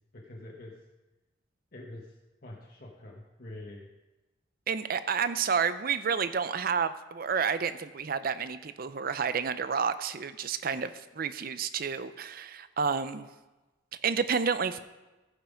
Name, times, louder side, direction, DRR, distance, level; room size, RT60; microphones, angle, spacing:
voice 1, 0.1-0.7 1.7-2.2 2.4-3.9, left 1 dB, 50° left, -2 dB, 1.2 m, -45 dB
voice 2, 4.7-13.3 14.0-14.8, right 6 dB, 50° right, 12 dB, 0.5 m, -30 dB
14.5 x 5.7 x 5.1 m, 1.1 s
head